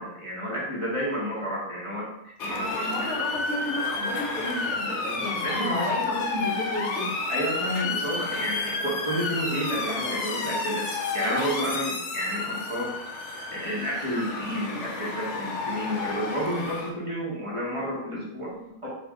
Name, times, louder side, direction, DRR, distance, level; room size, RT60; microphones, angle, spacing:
voice 1, 0.0-3.1 5.4-6.0 7.3-10.8 11.1-12.9 13.5-18.5 18.8-18.9, equal, 20° right, -7 dB, 1.3 m, -30 dB
Motor vehicle (road) / Siren, 2.4-16.9, left 3 dB, 65° left, 0.8 m, -31 dB
voice 2, 2.5-7.1 18.5-18.8, equal, 55° right, -6 dB, 1.8 m, -33 dB
3.4 x 2.8 x 3.6 m, 0.81 s
omnidirectional pair, 1.6 m